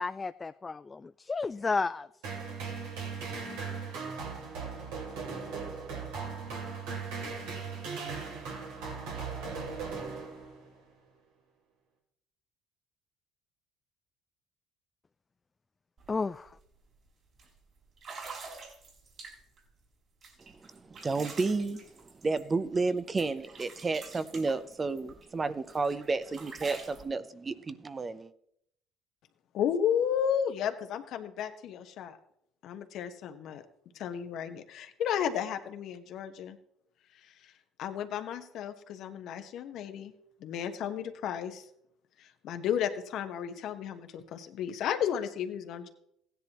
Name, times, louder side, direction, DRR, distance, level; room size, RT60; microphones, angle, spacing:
voice 1, 0.0-2.1 16.1-16.5, left 4 dB, 25° left, 12 dB, 0.3 m, -32 dB
sound 1, 2.2-10.7, right 5 dB, 85° right, 2.9 m, -38 dB
sound 2, 16.0-16.1 16.5-16.8 17.4-17.5 18.0-19.6 20.2-22.9 23.2-25.3 25.7-27.0, right 4 dB, 45° right, 4.3 m, -47 dB
voice 2, 20.4-28.3, right 3 dB, 25° right, 14 dB, 0.7 m, -32 dB
voice 3, 29.5-32.2 32.6-33.6 33.9-36.6 37.4-37.5 37.8-40.1 40.4-41.7 42.2-45.9, left 9 dB, 65° left, 7 dB, 1.1 m, -33 dB
16.0 x 10.5 x 3.0 m, 0.73 s
supercardioid pair, 85°, 0 cm